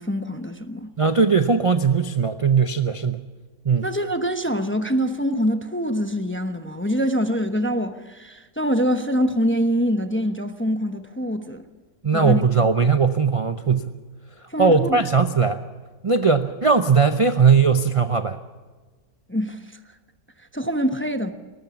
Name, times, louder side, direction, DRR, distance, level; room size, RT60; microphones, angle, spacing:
voice 1, 0.0-0.9 3.8-11.6 12.1-12.4 14.5-15.0 19.3-19.6 20.5-21.3, equal, 10° left, 0.6 m, -24 dB
voice 2, 1.0-3.2 3.6-3.9 12.0-14.0 14.6-15.6 16.0-18.4, right 5 dB, 50° right, 0.4 m, -19 dB
19.5 x 19.5 x 7.0 m
omnidirectional pair, 1.8 m